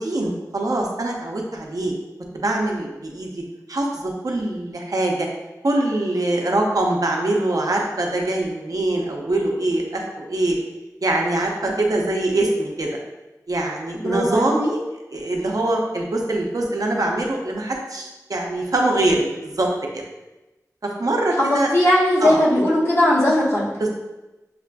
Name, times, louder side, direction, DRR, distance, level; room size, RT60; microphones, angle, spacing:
voice 1, 0.0-1.9 2.3-3.3 3.7-5.3 5.6-10.6 11.0-12.9 13.5-14.8 15.1-19.7 19.9-20.0 20.8-21.7 22.2-22.4 23.8-23.9, right 2 dB, 70° right, 0 dB, 0.6 m, -23 dB
voice 2, 13.9-14.5 21.7-23.7, left 1 dB, 45° left, -7 dB, 1.3 m, -18 dB
6.5 x 2.4 x 2.2 m, 1.0 s
wide cardioid pair, 65°, 6 cm